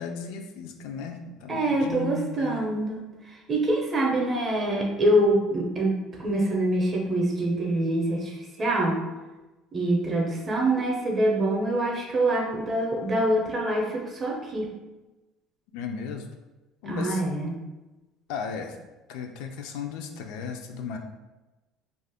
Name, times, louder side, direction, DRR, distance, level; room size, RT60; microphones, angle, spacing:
voice 1, 0.0-2.7 15.7-16.3 16.8-17.2 18.3-18.8 19.1-21.0, left 6 dB, 80° left, 4 dB, 0.3 m, -35 dB
voice 2, 1.5-3.0 3.5-9.0 9.7-14.7 16.8-17.6, right 1 dB, 25° right, 0 dB, 0.6 m, -25 dB
2.4 x 2.1 x 3.4 m, 1.1 s
cardioid pair, 145°, 0 cm